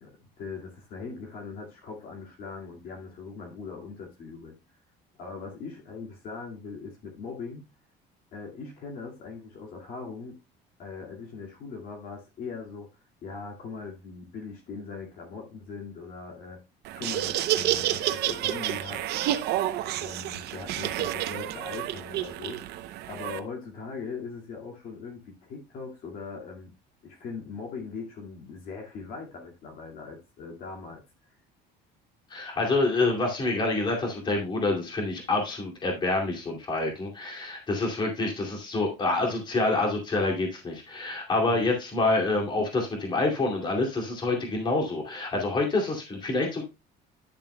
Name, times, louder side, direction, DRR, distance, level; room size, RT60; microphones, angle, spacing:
voice 1, 0.0-4.5 5.2-7.7 8.3-10.4 10.8-12.9 13.2-16.6 16.9-19.1 20.0-22.6 23.1-26.7 27.0-31.4 41.4-41.7, left 4 dB, 50° left, 0 dB, 2.1 m, -40 dB
Laughter, 16.8-23.4, right 13 dB, 60° right, 0.7 m, -29 dB
voice 2, 32.3-46.6, left 2 dB, 25° left, 0 dB, 2.5 m, -27 dB
10.5 x 7.1 x 2.2 m, 0.25 s
cardioid pair, 170°, 19 cm